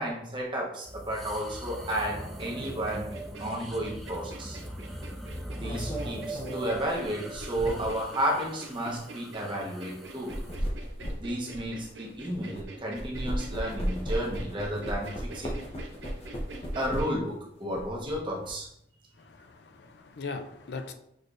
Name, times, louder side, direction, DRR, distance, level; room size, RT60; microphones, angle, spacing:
voice 1, 0.0-3.1 3.4-4.6 5.6-10.4 11.2-15.6 16.7-18.7, right 1 dB, 25° right, -2 dB, 0.9 m, -32 dB
sound 1, 0.8-10.6, right 1 dB, ahead, 0.4 m, -41 dB
sound 2, 2.4-17.1, right 2 dB, 80° right, 0.7 m, -47 dB
sound 3, 5.6-8.1 8.8-9.0 10.1-12.6 13.0-17.3 17.7-18.5, equal, 35° left, 0.7 m, -36 dB
voice 2, 19.2-20.9, left 4 dB, 65° left, 6 dB, 0.5 m, -39 dB
6.4 x 3.2 x 2.5 m, 0.75 s
head